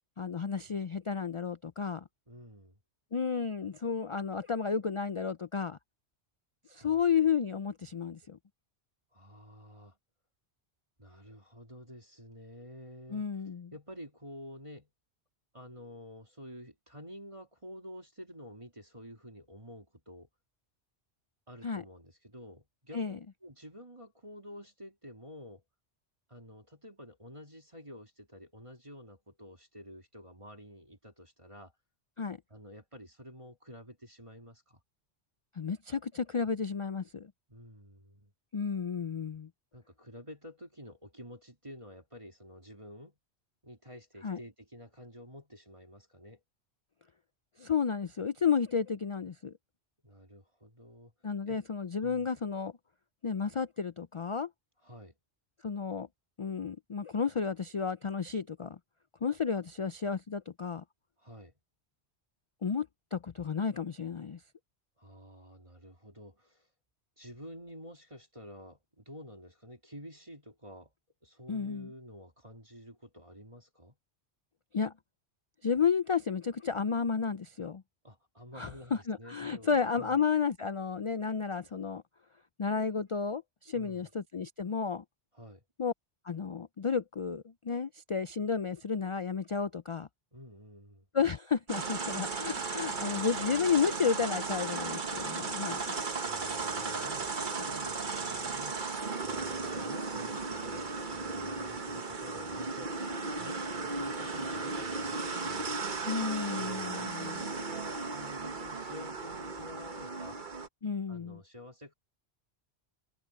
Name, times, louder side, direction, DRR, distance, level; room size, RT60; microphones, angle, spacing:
voice 1, 0.2-2.0 3.1-5.8 6.7-8.4 13.1-13.7 21.6-21.8 22.9-23.2 32.2-32.4 35.6-37.3 38.5-39.5 44.2-44.4 47.6-49.5 51.2-52.7 53.2-54.5 55.6-56.1 56.4-58.8 59.2-60.8 62.6-64.4 71.5-71.9 74.7-74.9 75.6-77.8 78.6-82.0 82.6-85.0 85.8-85.9 86.2-90.1 91.1-96.0 106.1-107.4 110.8-111.4, left 6 dB, 50° left, 0.4 m, -32 dB
voice 2, 2.3-2.8 6.7-7.0 9.1-10.0 11.0-13.2 13.7-14.9 15.5-20.3 21.5-25.6 26.3-31.7 32.5-34.8 37.5-38.3 39.7-43.2 43.6-46.4 50.0-51.1 51.5-51.6 52.0-52.3 54.8-55.1 61.2-61.5 65.0-66.7 67.2-70.9 71.2-73.9 78.0-80.2 83.7-84.1 85.3-85.6 90.3-91.1 96.2-98.8 99.2-105.8 106.6-110.4 111.1-111.9, equal, 30° right, 3.2 m, -50 dB
sound 1, 91.7-110.7, right 4 dB, 45° right, 1.4 m, -36 dB
omnidirectional pair, 1.1 m